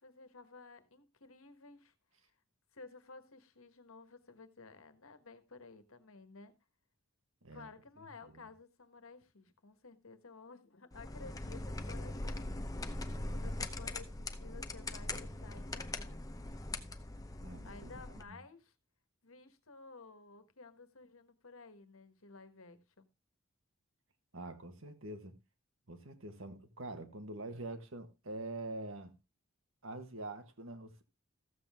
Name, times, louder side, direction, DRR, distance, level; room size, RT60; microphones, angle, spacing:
voice 1, 0.0-1.9 2.7-6.5 7.5-12.7 13.2-16.2 17.6-18.7 19.2-23.1, left 4 dB, 80° left, 1.5 m, -54 dB
sound 1, 10.9-18.2, left 2 dB, 15° left, 0.7 m, -41 dB
voice 2, 17.4-18.0 18.3-18.4 24.3-25.4 25.9-29.2 29.8-31.0, right 2 dB, 70° right, 1.6 m, -45 dB
14.5 x 7.6 x 3.6 m
head